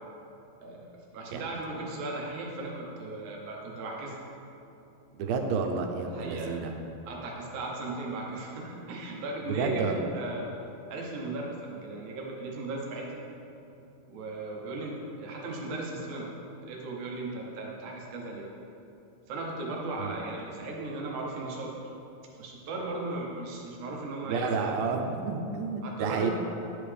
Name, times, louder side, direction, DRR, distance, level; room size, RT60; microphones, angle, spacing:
voice 1, 0.6-4.2 6.1-6.7 7.1-10.5 10.9-13.2 14.1-16.3 16.7-18.5 19.3-21.7 22.4-24.7 25.8-26.3, right 2 dB, 70° right, -2 dB, 2.1 m, -37 dB
voice 2, 5.2-6.7 9.5-10.0 20.0-20.2 24.2-26.3, right 5 dB, 85° right, 3 dB, 2.5 m, -30 dB
10.5 x 5.3 x 3.4 m, 2.8 s
omnidirectional pair, 4.1 m